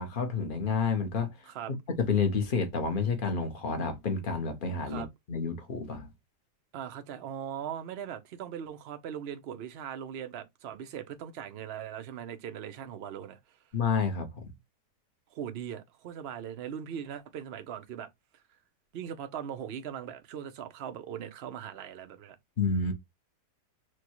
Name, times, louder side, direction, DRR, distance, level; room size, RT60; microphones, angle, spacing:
voice 1, 0.0-1.3 2.0-6.1 13.7-14.3 22.6-22.9, left 5 dB, 40° left, 0.8 m, -29 dB
voice 2, 6.7-13.4 15.3-18.1 18.9-22.4, right 9 dB, 65° right, 0.6 m, -40 dB
6.2 x 2.2 x 2.9 m
omnidirectional pair, 1.8 m